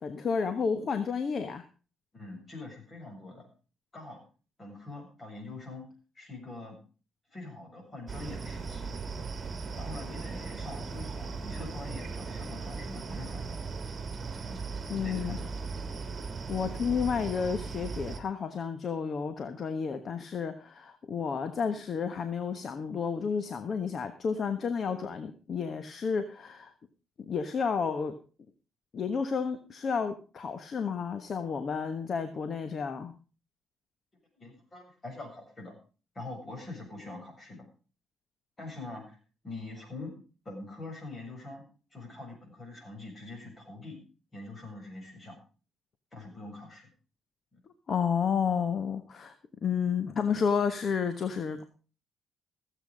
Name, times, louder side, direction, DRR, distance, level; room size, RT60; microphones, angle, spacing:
voice 1, 0.0-1.6 14.9-15.4 16.5-26.7 27.3-28.2 28.9-33.1 47.9-49.3 49.6-51.6, left 6 dB, 50° left, 10 dB, 1.2 m, -31 dB
voice 2, 2.1-3.5 3.9-4.2 4.6-5.9 6.2-6.8 7.3-8.9 9.8-13.5 14.5-14.6 15.0-15.5 34.4-35.7 36.2-37.7 38.6-39.2 39.4-40.1 40.5-41.6 41.9-44.0 44.3-45.4 46.1-46.9 47.5-47.6, left 2 dB, 30° left, 2 dB, 6.9 m, -44 dB
sound 1, 8.1-18.2, right 4 dB, 35° right, 1.9 m, -38 dB
15.5 x 8.1 x 5.2 m, 0.36 s
cardioid pair, 90°, 0 cm